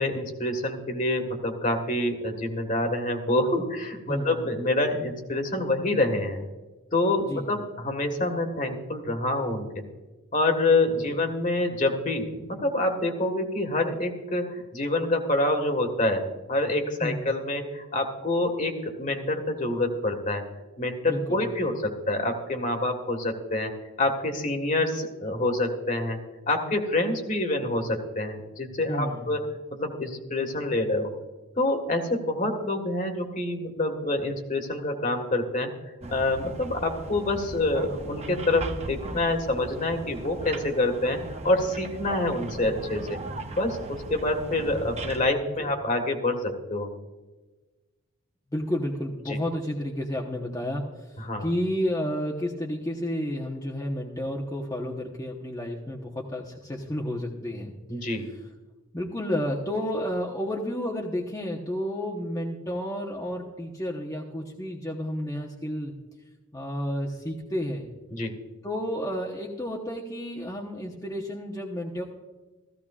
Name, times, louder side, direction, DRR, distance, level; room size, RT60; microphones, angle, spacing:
voice 1, 0.0-6.4 6.9-9.7 10.3-20.4 20.8-23.7 24.0-26.2 26.5-29.4 29.7-31.1 31.6-35.7 36.1-41.2 41.4-43.2 43.5-46.9 49.3-49.4 51.2-51.5 57.9-58.3 68.1-68.3, left 2 dB, 35° left, 5 dB, 1.6 m, -27 dB
voice 2, 4.1-4.4 7.2-7.5 17.0-17.2 21.1-21.5 28.9-29.3 45.6-45.7 48.5-57.7 58.0-58.1 58.9-65.9 66.5-67.9 68.6-72.0, equal, 15° left, -3 dB, 1.0 m, -31 dB
sound 1, 36.0-45.2, right 2 dB, 30° right, 0.8 m, -38 dB
15.5 x 15.5 x 2.4 m, 1.2 s
head